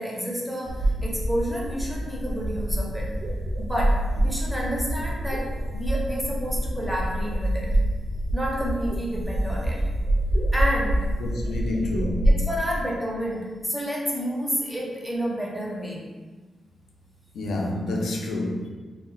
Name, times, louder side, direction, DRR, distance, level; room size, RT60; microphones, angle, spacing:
voice 1, 0.0-3.1 3.6-7.8 8.3-9.8 10.5-11.1 12.3-16.0, equal, ahead, -3 dB, 0.4 m, -30 dB
sound 1, 0.7-12.4, right 1 dB, 65° right, 0.4 m, -26 dB
voice 2, 11.2-12.5 17.3-18.7, left 2 dB, 80° left, -1 dB, 0.4 m, -28 dB
2.1 x 2.0 x 3.7 m, 1.3 s
wide cardioid pair, 135°, 0 cm